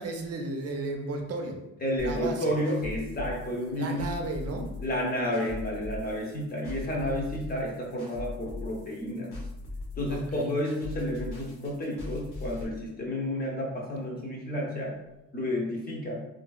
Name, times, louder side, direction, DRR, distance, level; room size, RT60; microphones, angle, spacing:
voice 1, 0.0-1.6 2.0-2.5 3.7-4.7 10.1-10.5, right 2 dB, 50° right, 3 dB, 0.5 m, -34 dB
voice 2, 1.8-4.1 4.8-9.3 10.0-15.0 15.3-16.1, left 1 dB, 30° left, -2 dB, 0.7 m, -31 dB
sound 1, 2.0-12.7, left 2 dB, 80° left, 0.8 m, -39 dB
2.7 x 2.6 x 2.3 m, 0.93 s
cardioid pair, 120°, 31 cm